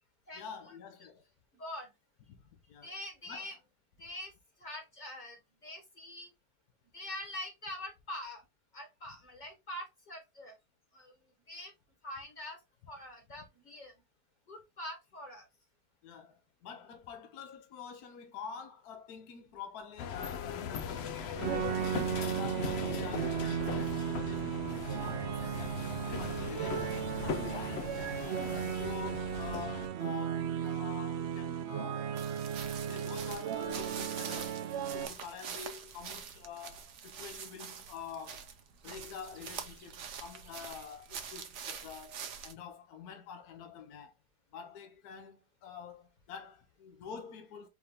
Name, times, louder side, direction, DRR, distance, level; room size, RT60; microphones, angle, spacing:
voice 1, 0.3-1.2 2.3-2.9 3.3-3.6 16.0-25.8 26.0-28.1 28.8-32.2 32.9-34.6 34.9-38.5 38.8-44.1 44.5-47.7, left 7 dB, 70° left, 1.2 m, -47 dB
voice 2, 1.6-1.9 2.8-3.5 4.0-4.3 4.6-5.4 5.6-6.3 6.9-8.4 8.7-10.6 10.9-11.1 11.5-11.7 12.0-12.6 12.9-13.9 14.5-15.4, left 1 dB, 30° left, 1.4 m, -44 dB
sound 1, 20.0-29.9, left 6 dB, 90° left, 0.5 m, -39 dB
sound 2, 21.4-35.1, right 9 dB, 90° right, 0.6 m, -35 dB
sound 3, 32.2-42.5, right 7 dB, 60° right, 0.8 m, -45 dB
4.9 x 2.7 x 3.4 m
omnidirectional pair, 1.7 m